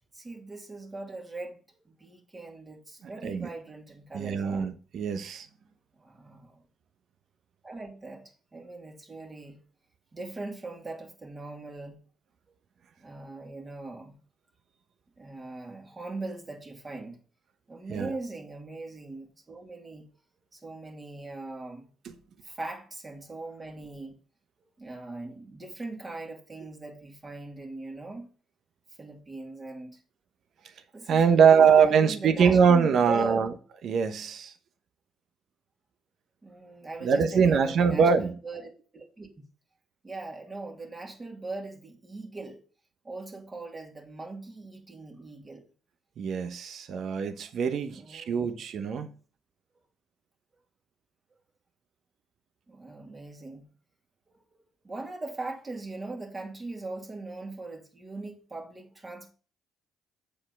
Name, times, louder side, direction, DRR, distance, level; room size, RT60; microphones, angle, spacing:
voice 1, 0.1-4.7 6.0-6.6 7.6-9.6 10.1-12.0 13.0-14.2 15.2-17.2 17.7-20.1 20.5-21.9 22.4-24.2 24.8-28.3 29.0-30.0 30.9-33.5 36.4-39.3 40.0-42.6 43.0-45.6 47.9-48.6 52.7-53.7 54.3-54.4 54.8-59.3, right 2 dB, 30° right, 2.4 m, -40 dB
voice 2, 3.0-3.5 4.1-5.5 17.9-18.1 31.1-33.5 33.8-34.5 37.0-38.3 46.2-49.1, right 6 dB, 65° right, 1.0 m, -23 dB
7.8 x 4.4 x 5.3 m
supercardioid pair, 65°, 0 cm